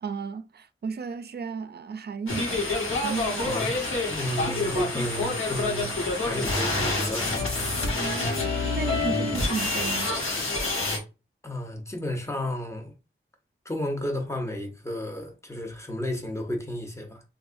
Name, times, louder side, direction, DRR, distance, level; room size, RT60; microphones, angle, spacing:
voice 1, 0.0-3.6 8.0-10.2, right 5 dB, 55° right, 0.4 m, -34 dB
sound 1, 2.3-11.0, left 2 dB, 90° left, 1.2 m, -27 dB
voice 2, 4.1-7.5 11.4-12.9 13.6-17.2, left 1 dB, 15° left, 0.9 m, -32 dB
3.3 x 2.5 x 2.6 m
wide cardioid pair, 60°, 21 cm